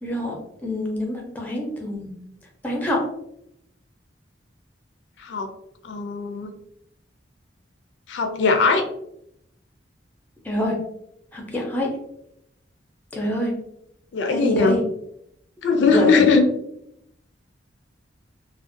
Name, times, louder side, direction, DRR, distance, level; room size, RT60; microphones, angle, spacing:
voice 1, 0.0-0.4 0.6-2.1 2.6-3.0 10.4-10.8 11.3-11.9 13.1-13.5 14.3-14.8 15.9-16.3, left 1 dB, 10° left, -1 dB, 0.4 m, -25 dB
voice 2, 5.8-6.5 8.1-8.8 14.1-14.8 15.6-16.4, left 4 dB, 70° left, 5 dB, 0.3 m, -19 dB
2.5 x 2.1 x 2.4 m, 0.78 s
head